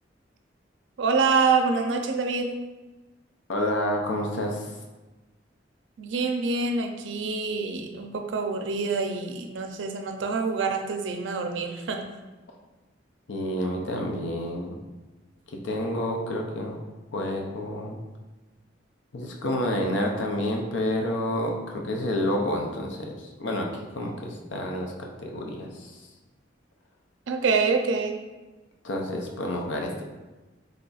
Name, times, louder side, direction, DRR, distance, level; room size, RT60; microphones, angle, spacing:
voice 1, 1.0-2.5 6.0-12.0 27.3-28.2, right 4 dB, 75° right, 4 dB, 0.4 m, -26 dB
voice 2, 3.5-4.7 13.3-14.8 15.5-16.8 17.1-18.0 19.1-25.9 28.8-29.9, left 1 dB, 80° left, 1 dB, 0.6 m, -29 dB
3.3 x 2.4 x 3.9 m, 1.2 s
head